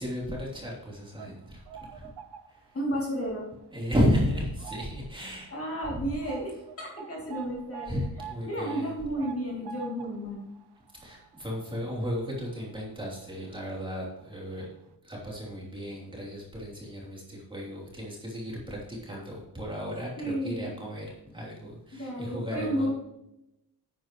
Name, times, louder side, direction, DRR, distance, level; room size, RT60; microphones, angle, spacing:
voice 1, 0.0-1.6 1.9-2.1 2.5-2.7 3.7-5.5 5.9-6.1 7.9-8.9 11.0-14.7 15.0-22.9, equal, 10° right, -4 dB, 3.1 m, -33 dB
sound 1, 0.9-2.9 3.3-3.5 4.1-5.2 5.4-5.5 5.8-12.9 13.2-13.3 14.2-14.3 14.6-14.7, right 8 dB, 75° right, 0.8 m, -46 dB
voice 2, 2.7-3.4 5.5-8.0 8.4-10.4 20.2-20.7 21.9-22.9, equal, 35° left, -3 dB, 2.7 m, -32 dB
11.0 x 9.1 x 3.1 m, 0.87 s
wide cardioid pair, 160°, 40 cm